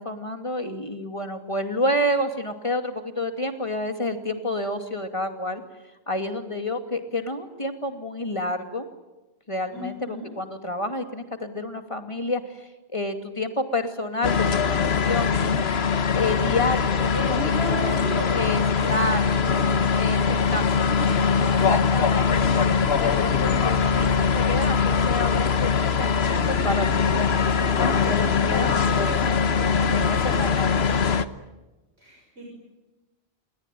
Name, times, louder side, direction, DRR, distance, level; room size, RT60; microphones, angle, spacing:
voice 1, 0.0-5.6 6.1-8.9 9.5-15.4 16.1-17.4 17.7-18.0 18.3-18.6 18.9-22.5 23.0-27.4 27.7-29.1 29.9-31.0, left 1 dB, 30° left, 7 dB, 2.5 m, -29 dB
voice 2, 9.7-10.3 17.1-20.3 32.0-32.5, equal, 80° right, -1 dB, 6.7 m, -35 dB
sound 1, 14.2-31.2, left 6 dB, 70° left, 1.4 m, -22 dB
29.0 x 21.0 x 9.2 m, 1.1 s
omnidirectional pair, 1.1 m